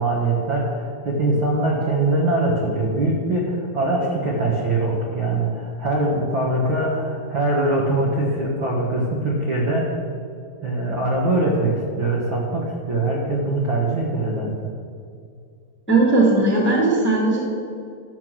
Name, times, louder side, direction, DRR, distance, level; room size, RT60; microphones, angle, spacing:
voice 1, 0.0-9.9 10.6-14.7, right 2 dB, 60° right, -3 dB, 1.2 m, -22 dB
voice 2, 15.9-17.4, right 3 dB, 5° left, -4 dB, 1.2 m, -17 dB
13.0 x 7.0 x 6.2 m, 2.3 s
omnidirectional pair, 4.4 m